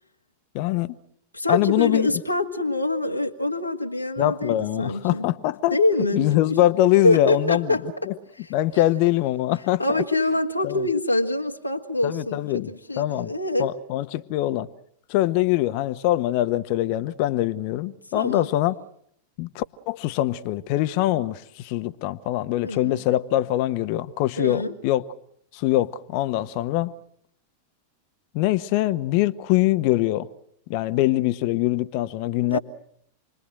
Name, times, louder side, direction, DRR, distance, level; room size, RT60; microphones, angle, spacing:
voice 1, 0.5-1.0 1.5-2.1 4.2-5.8 6.1-7.8 8.1-8.2 8.5-10.0 10.6-10.9 12.0-13.3 13.6-14.7 15.1-18.8 19.4-25.0 25.5-26.9 28.3-30.3 30.7-32.6, left 15 dB, 45° left, 1.2 m, -23 dB
voice 2, 1.3-5.3 5.7-6.3 7.0-7.8 9.8-13.7 18.1-18.5 22.6-23.0 24.4-24.7 32.4-32.6, left 2 dB, 85° left, 1.8 m, -25 dB
29.0 x 21.5 x 7.8 m
figure-of-eight pair, 90°, 0 cm